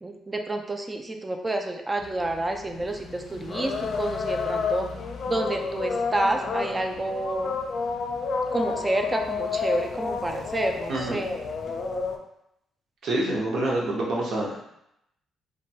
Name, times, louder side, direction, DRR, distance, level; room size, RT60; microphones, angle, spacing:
voice 1, 0.0-4.9 5.3-7.6 8.5-11.3, right 2 dB, 20° right, 4 dB, 0.3 m, -29 dB
sound 1, 2.0-12.2, left 5 dB, 60° left, 0.3 m, -31 dB
voice 2, 10.9-11.2 13.0-14.6, right 1 dB, 65° right, -3 dB, 0.7 m, -27 dB
2.6 x 2.2 x 2.7 m, 0.79 s
cardioid pair, 90°, 0 cm